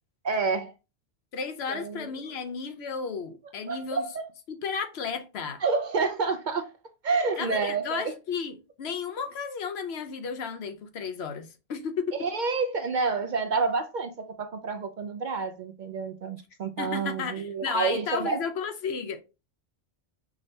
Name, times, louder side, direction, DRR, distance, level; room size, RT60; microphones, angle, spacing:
voice 1, 0.2-0.7 1.7-2.1 3.7-4.2 5.6-6.7 7.0-8.1 12.2-14.1 14.4-18.4, right 4 dB, 55° right, 0.5 m, -28 dB
voice 2, 1.3-4.0 4.5-5.6 7.4-12.3 16.8-19.2, left 6 dB, 70° left, 1.0 m, -33 dB
6.0 x 3.2 x 2.7 m
omnidirectional pair, 1.1 m